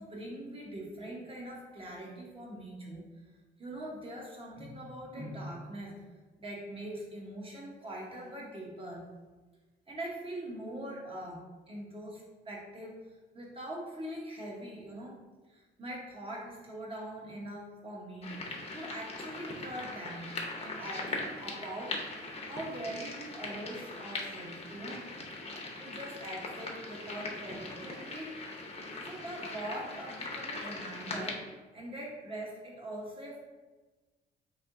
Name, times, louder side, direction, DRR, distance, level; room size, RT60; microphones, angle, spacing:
voice 1, 0.0-3.2 3.6-5.9 6.4-9.0 9.9-11.4 11.7-15.2 15.5-20.3 20.6-22.0 22.4-25.1 25.8-28.3 29.0-31.5 31.7-33.4, right 1 dB, 25° right, -3 dB, 1.1 m, -42 dB
sound 1, 18.2-31.3, left 2 dB, 30° left, 0.7 m, -40 dB
3.5 x 3.4 x 2.6 m, 1.3 s
cardioid pair, 90°, 20 cm